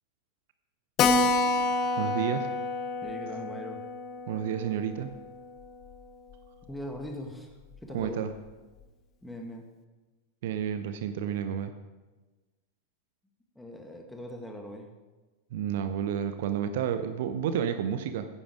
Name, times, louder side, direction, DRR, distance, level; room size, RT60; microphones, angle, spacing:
Keyboard (musical), 1.0-6.0 6.3-6.4 6.7-6.8 7.1-7.2 7.7-8.1, left 3 dB, 35° left, 0.9 m, -29 dB
voice 1, 2.0-2.5 4.3-5.1 7.9-8.3 10.4-11.7 15.5-18.3, right 9 dB, 55° right, 9 dB, 0.8 m, -30 dB
voice 2, 3.0-3.8 6.7-7.5 7.8-8.3 9.2-9.6 13.6-14.9, equal, 5° left, 2 dB, 2.1 m, -40 dB
14.0 x 10.5 x 4.9 m, 1.2 s
figure-of-eight pair, 90°, 0 cm